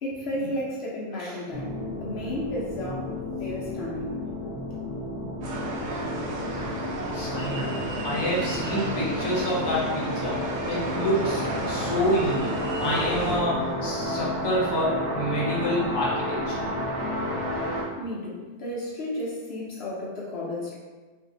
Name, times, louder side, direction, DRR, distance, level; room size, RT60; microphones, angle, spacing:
voice 1, 0.0-4.2 18.0-20.7, left 1 dB, 65° left, -5 dB, 0.9 m, -33 dB
sound 1, 1.5-17.8, left 1 dB, 60° right, 0.8 m, -32 dB
sound 2, 5.4-13.4, right 2 dB, 85° right, 1.0 m, -32 dB
voice 2, 7.1-16.6, equal, 25° left, -7 dB, 0.8 m, -28 dB
2.6 x 2.5 x 3.7 m, 1.3 s
omnidirectional pair, 1.2 m